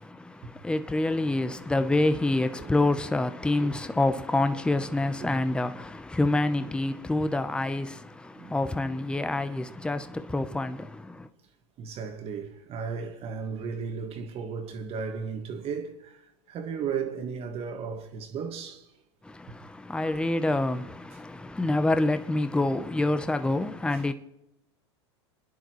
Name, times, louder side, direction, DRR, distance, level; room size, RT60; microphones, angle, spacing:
voice 1, 0.0-11.3 19.2-24.1, left 2 dB, 5° left, 0.8 m, -27 dB
voice 2, 11.8-18.9 19.5-19.6 20.0-20.2 23.9-24.0, right 6 dB, 45° right, 1.8 m, -35 dB
28.0 x 10.5 x 3.1 m
hypercardioid pair, 100°, 15 cm